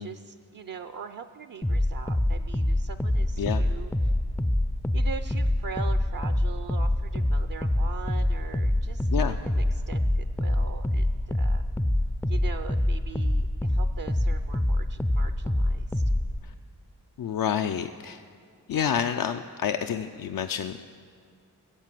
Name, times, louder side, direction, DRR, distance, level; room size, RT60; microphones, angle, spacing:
voice 1, 0.0-4.1 4.9-11.6 12.3-16.0, right 6 dB, 55° right, 10 dB, 0.5 m, -42 dB
sound 1, 1.6-16.4, left 1 dB, 5° left, 0.4 m, -26 dB
voice 2, 17.2-18.2 18.7-20.9, left 8 dB, 60° left, 7 dB, 0.5 m, -28 dB
15.5 x 7.5 x 7.5 m, 2.3 s
cardioid pair, 50°, 39 cm